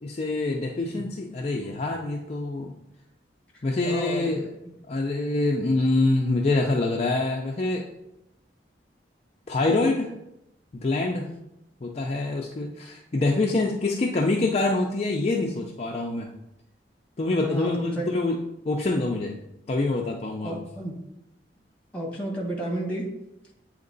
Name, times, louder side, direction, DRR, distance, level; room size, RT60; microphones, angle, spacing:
voice 1, 0.0-2.8 3.6-4.5 4.9-7.9 9.5-10.1 10.7-11.3 11.8-16.3 17.2-18.4 18.7-19.4 19.7-20.5, left 2 dB, 35° left, 0 dB, 0.5 m, -25 dB
voice 2, 3.8-4.3 17.4-18.1 20.4-20.9 21.9-23.1, right 1 dB, 5° left, -2 dB, 1.4 m, -31 dB
8.3 x 2.9 x 3.9 m, 0.85 s
head